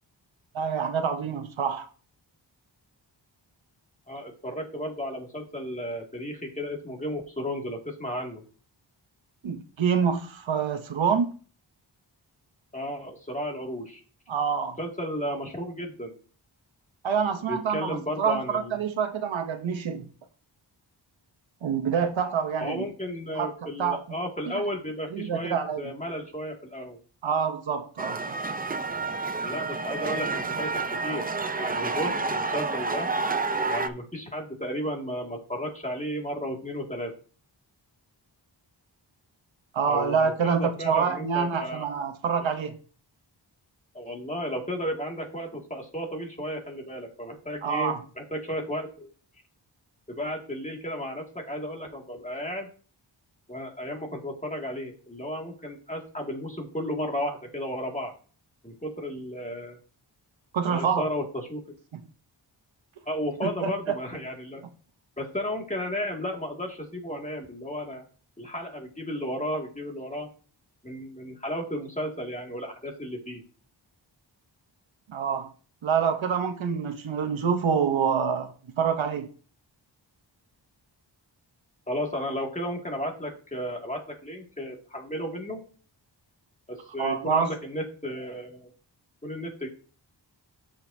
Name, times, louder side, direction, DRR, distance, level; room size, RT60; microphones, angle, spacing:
voice 1, 0.5-1.9 9.4-11.3 14.3-14.8 17.0-20.1 21.6-22.9 23.3-23.5 23.8-24.0 25.1-25.9 27.2-28.3 39.7-42.8 47.6-48.0 60.5-61.1 61.9-62.0 63.4-63.9 75.1-75.5 75.8-79.3 87.0-87.5, right 6 dB, 90° right, 0.9 m, -26 dB
voice 2, 4.1-8.4 12.7-14.0 14.8-16.1 17.5-18.8 22.6-27.0 29.4-30.7 31.0-31.2 31.5-33.1 33.7-37.1 39.9-41.9 42.4-42.5 43.9-49.1 50.1-52.7 53.5-58.1 58.6-59.8 60.7-61.6 63.1-64.6 65.2-68.0 68.4-70.3 70.8-73.4 81.9-85.6 86.7-88.7 89.2-89.7, equal, 15° left, 2.1 m, -33 dB
sound 1, 28.0-33.9, right 3 dB, 20° right, 0.5 m, -29 dB
13.0 x 5.1 x 2.7 m
wide cardioid pair, 90°, 45 cm